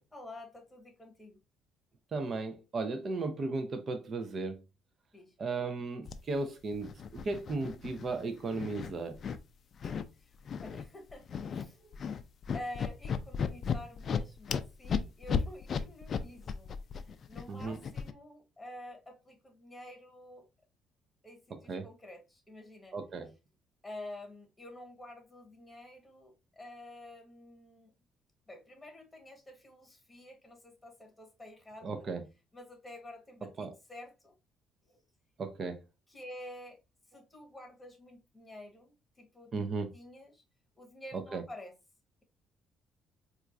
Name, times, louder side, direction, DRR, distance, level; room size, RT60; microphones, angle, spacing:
voice 1, 0.1-1.4 5.1-5.3 9.8-10.3 10.6-11.9 12.5-20.5 21.2-23.0 23.8-27.9 28.5-32.1 32.5-34.4 34.9-35.0 36.1-36.8 37.1-40.4 40.8-41.7, left 1 dB, 10° left, 1.2 m, -49 dB
voice 2, 2.1-4.6 5.4-9.2 17.5-17.8 21.7-21.9 22.9-23.3 31.8-32.2 33.6-33.7 35.4-35.8 39.5-39.9 41.1-41.4, right 3 dB, 40° right, 0.6 m, -35 dB
sound 1, 6.0-6.2 6.7-8.2 8.5-9.4 9.8-10.0 10.5-10.8 11.1-11.7 11.9-18.1, left 6 dB, 45° left, 0.3 m, -34 dB
4.3 x 2.4 x 2.5 m
cardioid pair, 105°, 0 cm